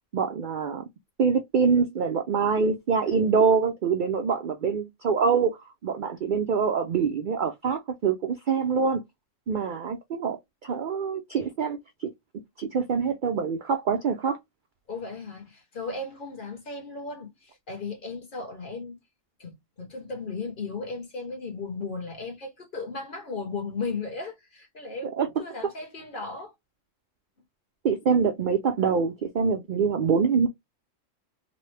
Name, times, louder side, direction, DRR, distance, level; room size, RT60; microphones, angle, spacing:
voice 1, 0.1-0.8 1.2-5.6 5.8-9.0 9.5-12.1 12.6-14.4 25.2-25.3 27.8-30.5, right 5 dB, 60° right, 0.5 m, -25 dB
voice 2, 14.9-19.0 19.4-25.1 25.4-26.5, left 3 dB, 40° left, 1.2 m, -36 dB
3.1 x 2.0 x 3.2 m
omnidirectional pair, 1.3 m